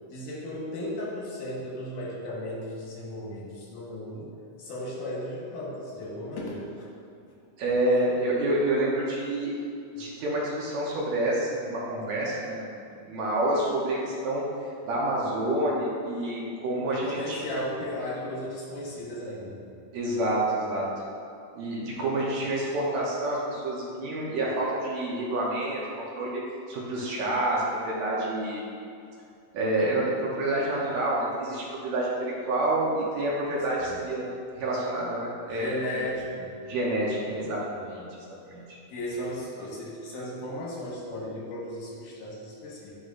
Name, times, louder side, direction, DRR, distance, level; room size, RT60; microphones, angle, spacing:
voice 1, 0.1-6.7 16.9-19.6 33.9-34.0 35.5-36.5 38.9-43.0, left 1 dB, 80° left, -5 dB, 2.8 m, -35 dB
voice 2, 7.6-9.6 10.0-12.7 13.0-14.4 14.8-17.4 19.9-20.9 21.5-26.4 26.7-28.6 29.5-34.3 34.6-36.1 36.6-38.1 38.4-38.8, right 1 dB, 70° right, -5 dB, 2.1 m, -28 dB
11.0 x 3.8 x 2.5 m, 2.5 s
omnidirectional pair, 3.6 m